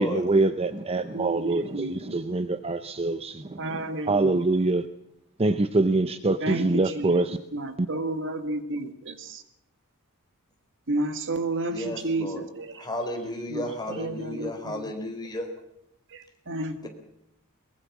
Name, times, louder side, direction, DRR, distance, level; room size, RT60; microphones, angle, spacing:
voice 1, 0.0-4.9 5.4-7.4 7.8-7.9, right 2 dB, 25° right, 11 dB, 0.7 m, -25 dB
voice 2, 1.1-2.2 3.6-4.4 6.4-9.4 10.9-12.7 13.5-13.6 13.9-14.8 16.1-16.9, right 2 dB, 60° right, 8 dB, 1.9 m, -31 dB
voice 3, 11.7-12.4 12.7-15.5, left 1 dB, 20° left, 3 dB, 4.2 m, -33 dB
22.5 x 21.0 x 6.1 m, 0.81 s
head